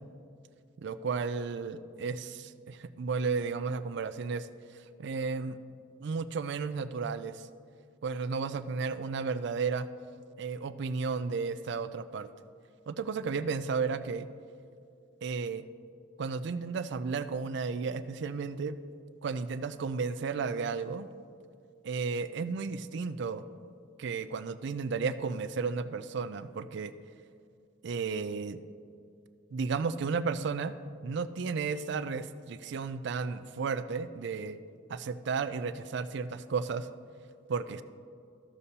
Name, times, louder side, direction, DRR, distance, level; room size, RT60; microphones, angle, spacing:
voice 1, 0.8-4.5 5.0-5.6 6.0-7.4 8.0-9.9 10.4-12.3 12.9-14.3 15.2-15.6 16.2-18.8 19.2-21.1 21.8-23.4 24.0-26.9 27.8-28.6 29.5-30.7 31.0-34.6 34.9-36.9 37.5-37.8, right 5 dB, 55° right, 13 dB, 0.3 m, -33 dB
14.0 x 6.7 x 2.8 m, 2.3 s
head